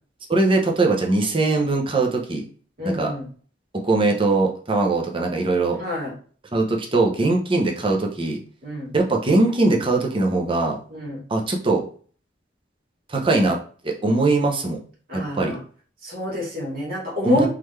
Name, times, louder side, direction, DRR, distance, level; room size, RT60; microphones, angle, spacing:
voice 1, 0.3-2.4 2.8-3.1 3.8-5.8 6.5-8.4 8.9-10.8 11.3-11.8 13.1-13.6 13.8-14.8 15.1-15.6 17.2-17.5, right 2 dB, 30° right, 1 dB, 0.7 m, -21 dB
voice 2, 2.8-3.3 5.8-6.1 8.6-8.9 10.9-11.2 15.1-15.6 16.0-17.5, left 2 dB, 55° right, -4 dB, 2.1 m, -27 dB
3.8 x 3.2 x 3.2 m, 0.44 s
head